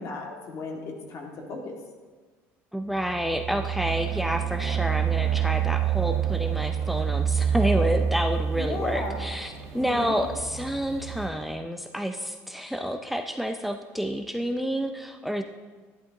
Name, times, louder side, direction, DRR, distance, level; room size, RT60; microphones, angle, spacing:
voice 1, 0.0-1.8 8.5-9.2 9.7-10.2, left 3 dB, 55° left, 0 dB, 2.1 m, -35 dB
voice 2, 2.7-15.4, equal, ahead, 5 dB, 0.5 m, -29 dB
sound 1, 3.0-11.3, right 8 dB, 60° right, 0.9 m, -28 dB
11.5 x 11.0 x 2.9 m, 1.4 s
cardioid pair, 110°, 6 cm